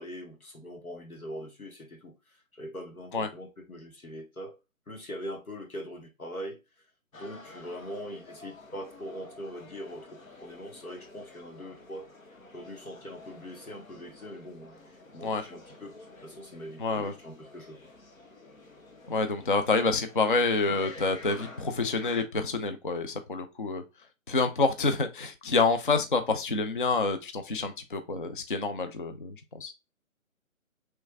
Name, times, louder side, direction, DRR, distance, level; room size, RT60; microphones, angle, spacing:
voice 1, 0.0-4.6 4.9-6.6 7.2-12.1 12.5-15.9 16.2-17.9, equal, 90° left, 1.4 m, -42 dB
sound 1, 7.1-22.2, left 2 dB, 75° left, 1.0 m, -50 dB
voice 2, 16.8-17.1 19.1-23.8 24.3-29.7, left 3 dB, 40° left, 0.4 m, -28 dB
4.4 x 3.2 x 2.3 m
figure-of-eight pair, 145°, 42 cm